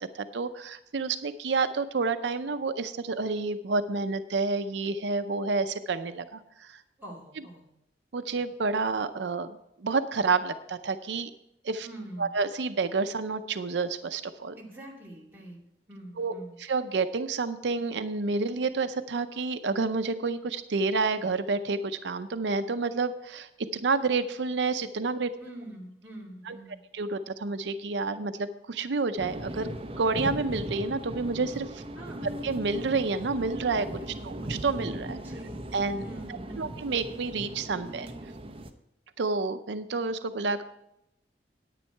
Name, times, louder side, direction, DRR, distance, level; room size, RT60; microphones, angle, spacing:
voice 1, 0.1-6.8 8.1-11.3 11.6-11.9 12.2-14.6 16.2-16.3 16.6-25.3 26.5-26.6 26.9-29.7 30.0-31.8 32.4-33.9 34.2-35.2 35.7-36.0 36.6-38.1 39.2-40.6, right 4 dB, 85° right, 10 dB, 0.6 m, -29 dB
voice 2, 7.0-7.7 11.8-12.3 14.6-15.6 15.9-16.5 25.4-26.8 32.0-32.3 34.0-34.4 35.2-35.6 36.0-36.7, right 1 dB, 10° right, -4 dB, 2.5 m, -44 dB
sound 1, 29.2-38.7, right 1 dB, 30° right, 0.8 m, -38 dB
10.0 x 9.4 x 4.5 m, 0.83 s
head